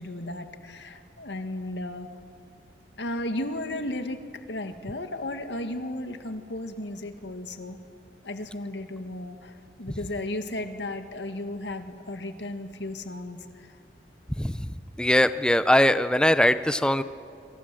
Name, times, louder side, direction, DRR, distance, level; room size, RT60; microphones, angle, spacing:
voice 1, 0.0-2.1 3.0-7.8 8.2-13.8, left 1 dB, 85° left, 8 dB, 2.0 m, -34 dB
voice 2, 15.0-17.0, left 1 dB, 5° left, 12 dB, 0.6 m, -21 dB
28.0 x 26.0 x 7.7 m, 2.6 s
head